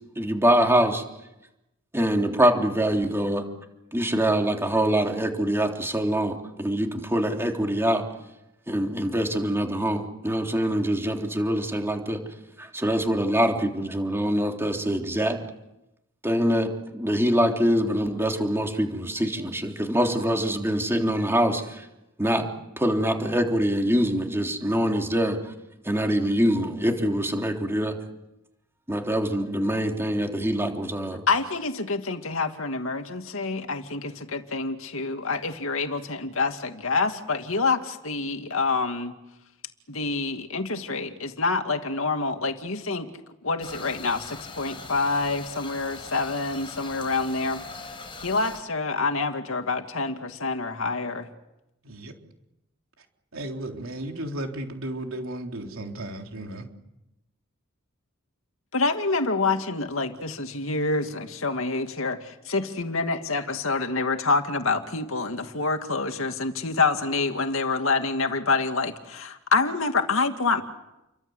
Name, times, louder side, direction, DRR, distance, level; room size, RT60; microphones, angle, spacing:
voice 1, 0.1-1.0 1.9-3.4 3.9-8.0 8.7-12.2 12.6-15.4 16.2-21.9 22.2-22.5 22.8-25.4 25.8-27.9 28.9-31.2, equal, 10° right, 2 dB, 3.4 m, -24 dB
voice 2, 31.3-39.1 39.9-43.1 43.4-47.6 48.2-51.3 58.7-70.6, left 3 dB, 70° left, 6 dB, 2.4 m, -27 dB
sound 1, 43.6-48.6, left 3 dB, 25° left, 5.5 m, -41 dB
voice 3, 51.8-52.1 53.0-53.1 53.3-56.6, right 1 dB, 75° right, 3 dB, 3.8 m, -34 dB
30.0 x 24.0 x 8.1 m, 0.93 s
head